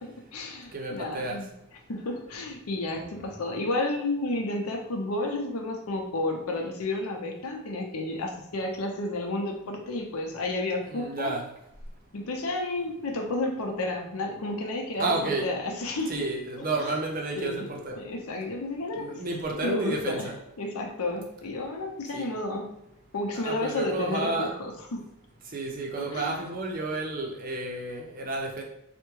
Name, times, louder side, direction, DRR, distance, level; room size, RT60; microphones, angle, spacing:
voice 1, 0.0-1.5 1.9-11.3 12.1-16.3 16.6-17.0 17.4-17.7 18.0-19.2 19.6-20.3 20.6-22.7 23.1-25.0 26.0-26.5, left 2 dB, 85° left, 2 dB, 0.6 m, -31 dB
voice 2, 0.7-1.4 10.9-11.5 15.0-15.5 16.1-18.0 19.0-20.3 22.1-22.3 23.4-24.5 25.4-28.6, right 2 dB, 40° right, 0 dB, 0.5 m, -31 dB
3.4 x 2.1 x 3.1 m, 0.83 s
head